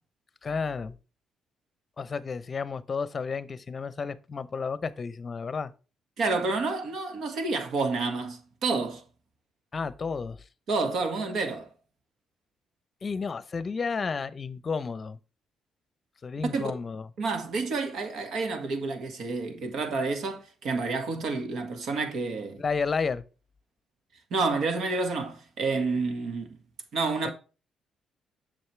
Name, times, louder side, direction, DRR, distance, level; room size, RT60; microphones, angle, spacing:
voice 1, 0.4-1.0 2.0-5.7 9.7-10.4 13.0-15.2 16.2-17.1 22.6-23.2 27.2-27.3, left 5 dB, 35° left, 0.7 m, -32 dB
voice 2, 6.2-9.0 10.7-11.7 16.5-16.7 17.2-22.6 24.3-26.6 26.9-27.3, right 3 dB, 70° right, 1.8 m, -29 dB
7.8 x 6.3 x 3.3 m
cardioid pair, 90°, 0 cm